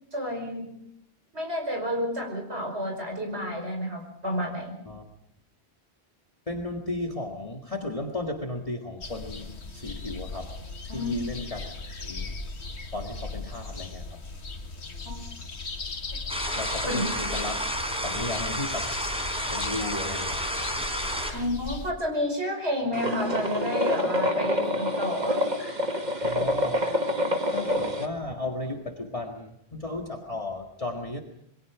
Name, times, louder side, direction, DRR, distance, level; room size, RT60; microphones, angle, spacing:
voice 1, 0.1-0.7 1.3-4.8 10.9-11.2 15.0-15.2 16.8-17.1 21.3-25.8, left 1 dB, 85° right, 3 dB, 5.7 m, -30 dB
voice 2, 6.5-10.6 10.9-12.3 12.9-14.2 16.5-17.6 18.0-19.0 19.5-20.7 26.2-26.8 27.4-31.2, left 2 dB, 30° left, 1 dB, 1.9 m, -35 dB
sound 1, 9.0-21.9, left 3 dB, 85° left, 2.0 m, -38 dB
sound 2, 16.3-21.3, equal, 5° right, 4.0 m, -31 dB
sound 3, 22.9-28.1, left 1 dB, 40° right, 2.0 m, -27 dB
27.0 x 22.0 x 5.0 m, 0.74 s
omnidirectional pair, 1.1 m